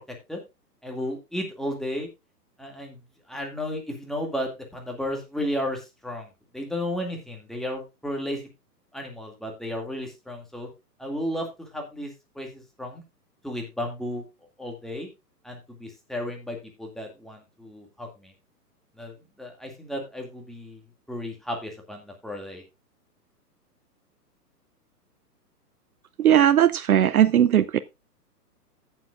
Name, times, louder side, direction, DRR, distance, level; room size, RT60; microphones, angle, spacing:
voice 1, 0.8-2.1 2.6-3.0 3.3-6.3 6.5-8.4 8.9-10.7 11.0-12.1 12.4-13.0 13.4-14.2 14.6-15.1 15.4-18.3 19.0-20.8 21.1-22.6, left 1 dB, ahead, 2.3 m, -33 dB
voice 2, 26.2-27.8, right 10 dB, 60° right, 0.7 m, -18 dB
16.0 x 7.5 x 2.5 m
figure-of-eight pair, 120°, 49 cm